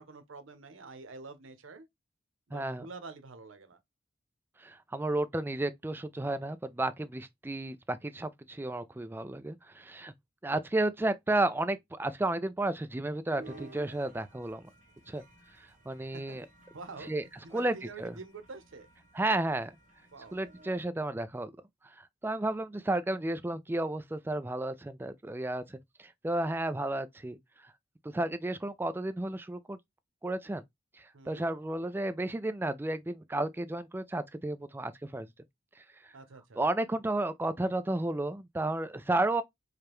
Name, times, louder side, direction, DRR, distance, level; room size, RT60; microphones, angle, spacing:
voice 1, 0.0-1.9 2.5-3.8 16.1-16.4 16.7-17.1 17.4-18.9 20.1-20.4 31.1-31.5 36.1-36.6, right 3 dB, 90° right, 0.8 m, -47 dB
voice 2, 2.5-2.9 4.6-10.1 10.4-14.7 15.1-15.2 15.6-16.5 17.1-17.2 17.5-18.1 19.1-19.8 20.3-21.5 21.8-27.4 27.6-27.7 28.0-29.8 30.2-30.6 31.0-35.3 35.8-36.1 36.6-39.4, right 2 dB, 10° right, 0.4 m, -32 dB
sound 1, 13.4-20.8, right 4 dB, 40° right, 0.9 m, -55 dB
4.9 x 2.2 x 3.0 m
head